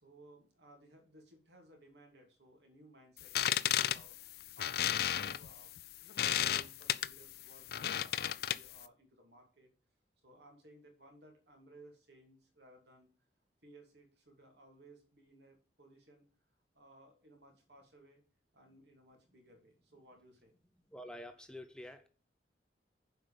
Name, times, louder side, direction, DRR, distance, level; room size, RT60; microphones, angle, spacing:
voice 1, 0.0-9.7 10.2-13.1 13.6-16.3 16.7-18.2 18.5-20.5, right 1 dB, 70° right, 2 dB, 3.0 m, -61 dB
sound 1, 3.2-8.8, left 11 dB, 60° left, 0.4 m, -34 dB
voice 2, 20.9-22.1, left 1 dB, 5° left, 7 dB, 0.7 m, -48 dB
7.7 x 5.1 x 6.7 m, 0.39 s
head